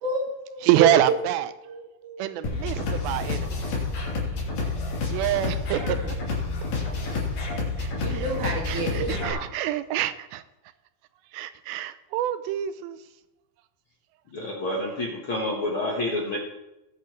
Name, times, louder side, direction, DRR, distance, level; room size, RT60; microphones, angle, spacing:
voice 1, 0.0-0.9 1.6-2.5 5.8-6.1 8.0-9.5, right 3 dB, 60° right, 3.3 m, -30 dB
voice 2, 0.6-1.5 2.2-3.6 5.1-5.8 7.8-8.2 8.7-10.4 11.3-13.0, right 13 dB, 80° right, 2.3 m, -26 dB
sound 1, 2.4-9.3, left 3 dB, 75° left, 5.0 m, -29 dB
voice 3, 14.3-16.4, left 1 dB, 60° left, 1.4 m, -28 dB
20.0 x 8.5 x 3.2 m
omnidirectional pair, 4.5 m